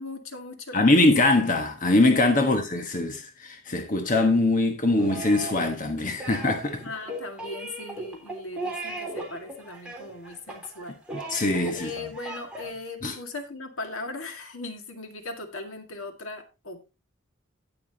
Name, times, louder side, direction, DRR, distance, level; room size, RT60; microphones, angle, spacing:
voice 1, 0.0-1.1 2.4-2.6 6.8-11.0 11.7-16.9, left 2 dB, 75° left, 2.0 m, -38 dB
voice 2, 0.7-6.8 11.3-11.9 13.0-13.1, left 2 dB, 40° left, 1.3 m, -22 dB
sound 1, 5.0-12.7, right 2 dB, 5° right, 3.5 m, -37 dB
18.0 x 6.0 x 2.9 m
head